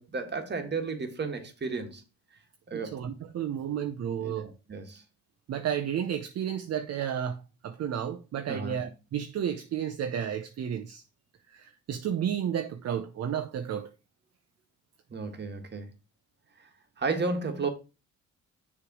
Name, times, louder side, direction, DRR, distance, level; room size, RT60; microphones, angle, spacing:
voice 1, 0.0-2.0 2.7-2.9 4.2-5.0 8.5-8.8 15.1-15.9 17.0-17.7, right 4 dB, 35° right, 1.5 m, -33 dB
voice 2, 2.7-4.5 5.5-11.0 11.5-13.9, right 9 dB, 55° right, 0.7 m, -32 dB
6.7 x 3.3 x 6.0 m
cardioid pair, 90°, 30 cm